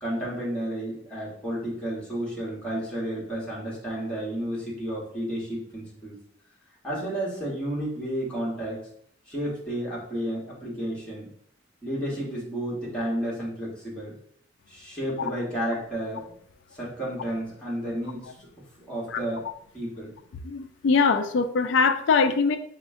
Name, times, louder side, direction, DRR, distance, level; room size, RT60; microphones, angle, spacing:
voice 1, 0.0-6.2 6.8-8.8 9.3-11.3 11.8-14.1 14.7-16.3 16.7-18.3 18.9-19.5 19.7-20.1, right 1 dB, 5° left, -7 dB, 1.4 m, -31 dB
voice 2, 20.4-22.6, left 5 dB, 70° left, 8 dB, 0.4 m, -22 dB
5.1 x 2.1 x 3.6 m, 0.64 s
head